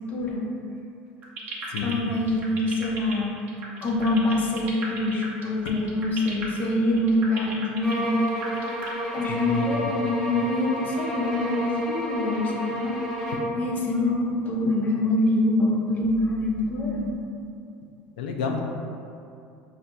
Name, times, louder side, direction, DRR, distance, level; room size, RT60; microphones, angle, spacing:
voice 1, 0.1-0.5 1.8-3.4 3.8-8.2 9.1-13.0 13.5-17.1, left 1 dB, 40° left, -1 dB, 0.5 m, -25 dB
sound 1, 1.2-8.9, right 4 dB, 40° right, 0.6 m, -36 dB
voice 2, 1.7-2.5 9.3-10.0 18.2-18.6, left 5 dB, 90° left, 3 dB, 0.3 m, -31 dB
sound 2, 7.8-13.6, equal, ahead, 1.0 m, -30 dB
4.1 x 2.5 x 2.2 m, 2.5 s
supercardioid pair, 110°, 4 cm